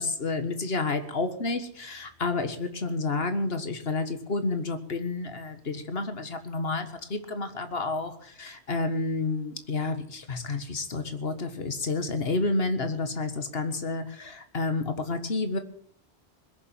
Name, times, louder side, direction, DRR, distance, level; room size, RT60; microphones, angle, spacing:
voice 1, 0.0-15.6, left 3 dB, 70° left, 8 dB, 1.8 m, -30 dB
21.0 x 7.2 x 9.4 m, 0.63 s
omnidirectional pair, 1.1 m